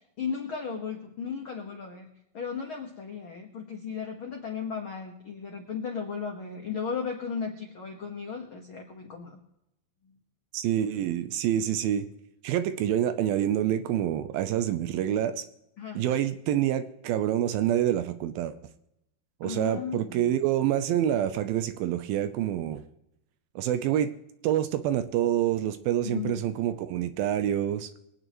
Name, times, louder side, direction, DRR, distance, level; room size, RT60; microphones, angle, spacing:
voice 1, 0.2-2.1 2.3-9.4 15.8-16.0 19.4-20.3 26.0-26.4, left 6 dB, 80° left, 2 dB, 1.1 m, -35 dB
voice 2, 10.5-12.1 12.4-15.4 16.0-18.6 19.4-22.8 23.6-24.1 24.4-27.9, right 11 dB, 80° right, 11 dB, 2.3 m, -27 dB
25.0 x 9.3 x 3.0 m, 0.85 s
omnidirectional pair, 4.5 m